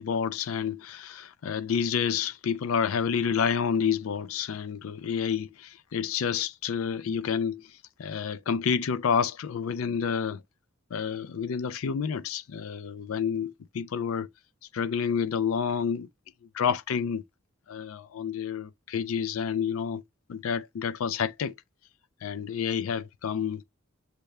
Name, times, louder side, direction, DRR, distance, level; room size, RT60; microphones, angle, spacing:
voice 1, 0.0-7.6 8.0-10.4 10.9-14.3 14.7-16.1 16.5-17.2 17.7-20.0 20.3-21.5 22.2-23.6, left 7 dB, 80° left, 0.4 m, -29 dB
6.6 x 2.2 x 3.2 m
head